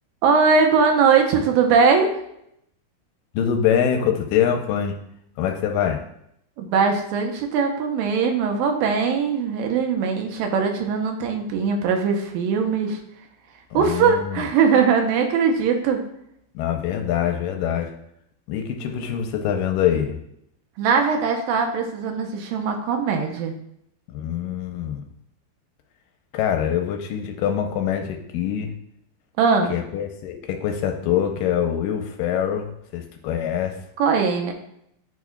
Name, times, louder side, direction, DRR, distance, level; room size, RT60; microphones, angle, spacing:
voice 1, 0.2-2.2 6.6-13.0 13.7-16.0 20.8-23.5 29.4-29.8 34.0-34.5, right 5 dB, 85° right, 3 dB, 2.5 m, -20 dB
voice 2, 3.3-4.9 5.4-6.0 13.7-14.4 16.6-17.9 18.5-20.2 24.1-25.0 26.3-28.7 29.7-33.8, left 9 dB, 80° left, 4 dB, 2.2 m, -24 dB
10.5 x 4.8 x 2.3 m, 0.76 s
omnidirectional pair, 4.1 m